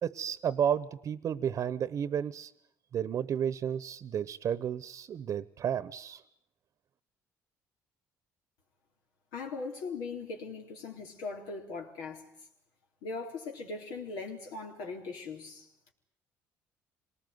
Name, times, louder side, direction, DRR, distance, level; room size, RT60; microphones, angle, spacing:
voice 1, 0.0-2.5 2.9-6.2, right 8 dB, 55° right, 1.0 m, -32 dB
voice 2, 9.3-12.3 13.0-15.7, left 4 dB, 85° left, 4.0 m, -39 dB
26.0 x 20.0 x 9.5 m
supercardioid pair, 85°, 7 cm